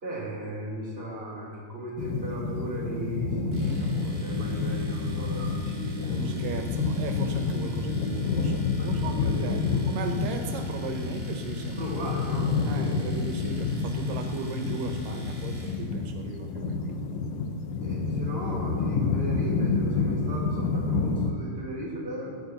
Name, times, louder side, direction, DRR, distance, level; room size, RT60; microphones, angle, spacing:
voice 1, 0.0-6.8 8.8-9.9 11.8-12.5 12.8-13.0 17.8-22.4, right 1 dB, 15° right, -6 dB, 3.4 m, -37 dB
sound 1, 2.0-21.3, left 4 dB, 85° left, 1.3 m, -29 dB
Domestic sounds home sounds, 3.5-15.8, right 1 dB, 35° right, 2.7 m, -49 dB
voice 2, 6.2-11.9 12.6-17.0, right 4 dB, 85° right, 5 dB, 2.6 m, -37 dB
16.0 x 5.3 x 8.0 m, 2.1 s
omnidirectional pair, 3.8 m